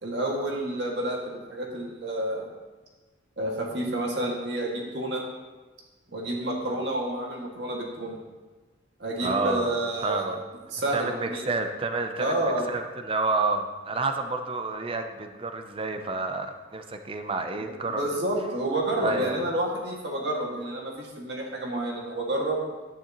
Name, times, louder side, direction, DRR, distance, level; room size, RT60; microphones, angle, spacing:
voice 1, 0.0-2.5 3.4-5.2 6.1-8.2 9.0-10.3 10.7-11.4 12.2-12.7 17.9-22.6, right 1 dB, 60° right, -2 dB, 2.0 m, -29 dB
voice 2, 9.2-9.7 10.0-10.4 10.9-18.1 19.0-19.4, right 3 dB, 30° right, 6 dB, 0.6 m, -29 dB
11.5 x 9.8 x 3.0 m, 1.2 s
head